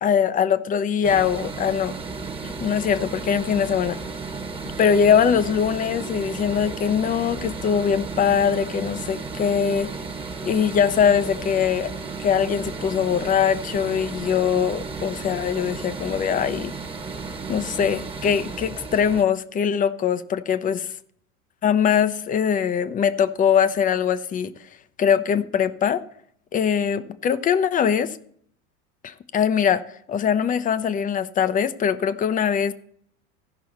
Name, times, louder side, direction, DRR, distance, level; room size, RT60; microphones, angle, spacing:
voice 1, 0.0-2.0 2.4-4.0 4.8-9.9 10.4-11.9 12.2-16.7 17.5-20.8 21.6-24.5 25.0-26.0 26.5-28.2 29.0-29.8 30.1-32.7, left 7 dB, 20° left, 0.5 m, -22 dB
sound 1, 1.0-19.2, right 4 dB, 10° right, 1.1 m, -34 dB
15.5 x 5.5 x 4.2 m
hypercardioid pair, 85°, 45 cm